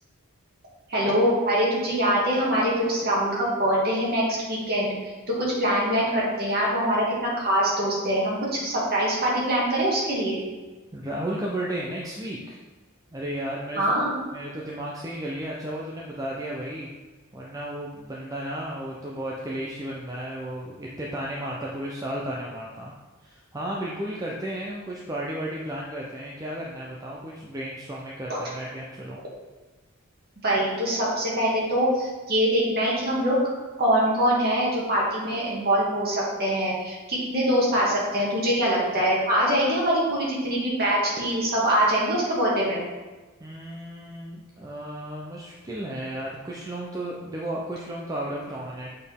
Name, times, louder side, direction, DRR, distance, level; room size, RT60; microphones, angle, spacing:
voice 1, 0.9-4.9 5.3-10.4 13.8-14.2 28.3-28.4 30.4-33.4 33.8-42.8, equal, 45° right, -5 dB, 1.9 m, -23 dB
voice 2, 10.9-12.6 13.1-13.9 14.3-16.9 17.3-22.9 23.2-29.2 43.4-48.9, right 1 dB, 15° right, -4 dB, 0.5 m, -33 dB
7.7 x 4.3 x 3.5 m, 1.2 s
head